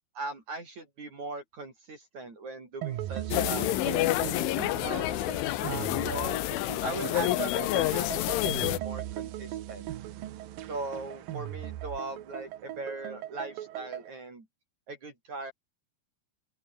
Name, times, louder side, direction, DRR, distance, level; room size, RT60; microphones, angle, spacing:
voice 1, 0.2-4.1 4.8-5.1 5.7-6.4 6.8-9.9 10.7-14.5 14.9-15.5, right 2 dB, 35° right, 5.8 m, -39 dB
sound 1, 2.8-14.1, right 13 dB, 70° right, 2.3 m, -39 dB
sound 2, 3.3-8.8, left 16 dB, 80° left, 3.7 m, -28 dB
open air
omnidirectional pair, 5.7 m